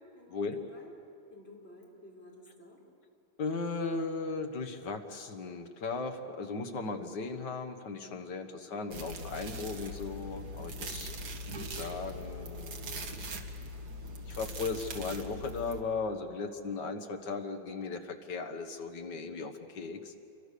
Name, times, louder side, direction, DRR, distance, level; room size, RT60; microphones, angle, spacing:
voice 1, 0.1-0.9 1.3-2.8 9.9-10.2 10.8-11.2, left 2 dB, 30° left, -2 dB, 4.6 m, -53 dB
voice 2, 3.4-11.1 11.7-13.1 14.2-20.1, left 4 dB, 65° left, 6 dB, 2.0 m, -37 dB
sound 1, 8.9-15.8, equal, 60° right, 2.1 m, -41 dB
28.0 x 23.5 x 6.8 m, 2.5 s
omnidirectional pair, 2.0 m